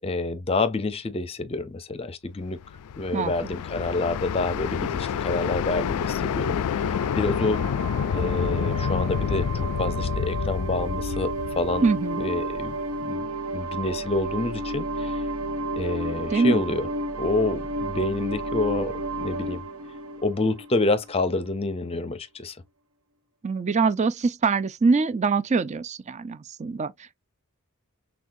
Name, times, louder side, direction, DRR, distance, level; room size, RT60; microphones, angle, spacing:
voice 1, 0.0-2.6 3.0-7.6 8.1-9.5 9.8-11.9 12.2-13.3 13.5-15.2 15.7-16.9 17.1-19.6 20.2-22.6, left 2 dB, 25° left, 0.6 m, -28 dB
sound 1, 2.6-12.6, left 7 dB, 85° left, 0.3 m, -28 dB
sound 2, 6.8-21.2, right 2 dB, 70° right, 1.1 m, -32 dB
voice 2, 11.8-12.2 16.3-16.6 23.4-26.9, right 4 dB, 30° right, 0.4 m, -23 dB
6.1 x 2.3 x 2.6 m
head